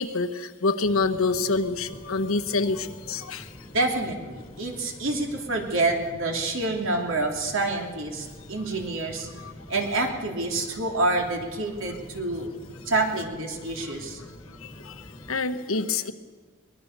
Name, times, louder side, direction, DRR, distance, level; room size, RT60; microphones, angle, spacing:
voice 1, 0.0-3.5 9.4-9.5 14.6-14.9 15.3-16.1, left 3 dB, 75° left, 9 dB, 1.3 m, -26 dB
sound 1, 0.8-15.4, left 1 dB, 20° left, 1.7 m, -46 dB
voice 2, 3.7-9.3 9.7-12.5 12.9-14.2, right 2 dB, 65° right, 2 dB, 3.3 m, -27 dB
23.0 x 20.5 x 6.8 m, 1.4 s
head